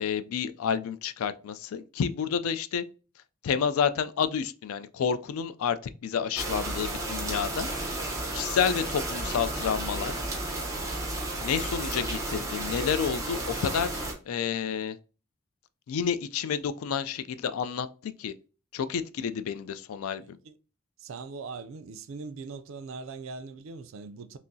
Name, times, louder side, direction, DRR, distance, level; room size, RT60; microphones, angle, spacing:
voice 1, 0.0-2.8 3.4-7.7 8.3-10.1 11.4-13.9 14.3-15.0 15.9-18.3 18.7-20.4, left 7 dB, 75° left, 0.3 m, -29 dB
sound 1, 6.4-14.1, right 2 dB, 15° right, 0.6 m, -33 dB
voice 2, 20.2-20.5 21.0-24.4, right 4 dB, 65° right, 0.4 m, -41 dB
5.8 x 2.0 x 2.6 m
head